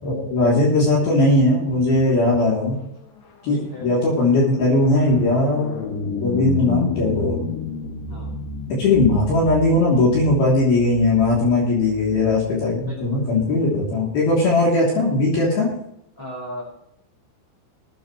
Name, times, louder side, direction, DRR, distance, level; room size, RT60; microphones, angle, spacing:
voice 1, 0.0-2.8 3.4-5.7 6.2-7.4 8.8-15.7, left 2 dB, 55° left, -4 dB, 4.8 m, -19 dB
sound 1, 2.9-12.4, left 5 dB, 75° left, 4.4 m, -31 dB
voice 2, 3.5-3.9 8.1-8.4 12.9-13.3 16.2-16.6, left 1 dB, 5° left, -3 dB, 5.3 m, -36 dB
21.0 x 9.2 x 3.2 m, 0.78 s
omnidirectional pair, 5.4 m